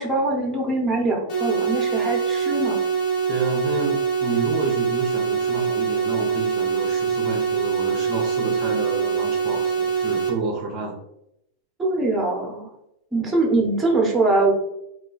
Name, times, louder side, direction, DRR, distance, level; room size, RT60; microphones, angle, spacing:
voice 1, 0.0-2.8 11.8-12.7 13.1-14.5, right 2 dB, 15° right, 0 dB, 0.9 m, -22 dB
sound 1, 1.3-10.3, right 6 dB, 45° left, 1.0 m, -24 dB
voice 2, 3.3-11.0, right 3 dB, 40° right, -1 dB, 0.6 m, -29 dB
2.4 x 2.2 x 3.9 m, 0.80 s
hypercardioid pair, 105°, 0 cm